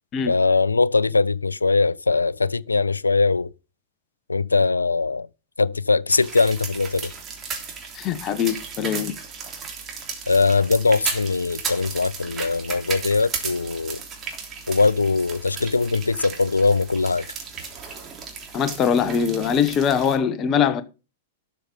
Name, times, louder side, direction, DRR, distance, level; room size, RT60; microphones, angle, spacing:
voice 1, 0.3-3.5 4.3-5.3 5.6-7.1 10.3-14.0 14.7-17.3, left 3 dB, 85° left, 0.4 m, -21 dB
sound 1, 6.1-20.2, right 5 dB, 25° right, 3.3 m, -35 dB
voice 2, 7.9-9.1 18.5-20.8, left 7 dB, 30° left, 1.1 m, -22 dB
12.5 x 6.7 x 5.1 m
figure-of-eight pair, 105°, 0 cm